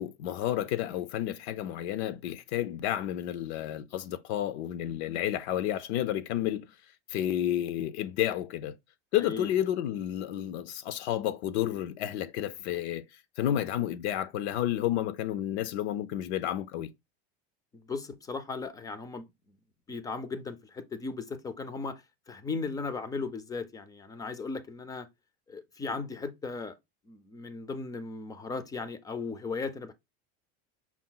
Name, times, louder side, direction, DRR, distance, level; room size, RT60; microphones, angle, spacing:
voice 1, 0.0-6.7 7.1-8.7 9.1-13.0 13.4-16.9, left 12 dB, 75° left, 0.6 m, -31 dB
voice 2, 9.2-9.5 17.7-19.3 19.9-22.0 22.3-25.1 25.5-26.8 27.1-29.9, left 4 dB, 10° left, 0.3 m, -37 dB
5.7 x 2.3 x 3.7 m
supercardioid pair, 140°, 33 cm